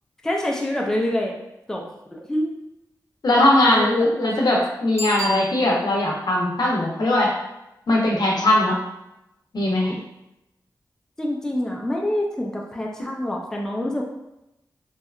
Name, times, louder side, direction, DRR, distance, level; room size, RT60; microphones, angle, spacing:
voice 1, 0.2-1.4 1.7-1.8 2.1-2.6 3.6-4.1 11.2-14.0, left 1 dB, 5° left, -1 dB, 0.4 m, -26 dB
voice 2, 3.2-7.3 7.9-8.8 9.5-10.0, left 1 dB, 65° left, -2 dB, 0.6 m, -20 dB
Bicycle bell, 4.9-6.1 11.6-11.7, right 1 dB, 40° right, 0.7 m, -32 dB
2.7 x 2.2 x 2.3 m, 0.89 s
cardioid pair, 65°, 8 cm